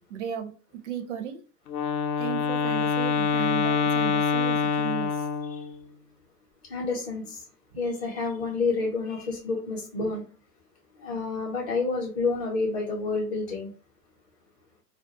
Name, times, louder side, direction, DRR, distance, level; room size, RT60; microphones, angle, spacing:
voice 1, 0.1-0.5 0.8-1.4 2.2-5.2, right 9 dB, 50° right, 0.5 m, -35 dB
Wind instrument woodwind instrument, 1.7-5.8, left 5 dB, 65° left, 0.6 m, -25 dB
voice 2, 6.7-7.4 7.8-10.2 11.0-13.7, left 3 dB, 25° left, 0.6 m, -29 dB
2.3 x 2.2 x 2.7 m
hypercardioid pair, 130°, 50 cm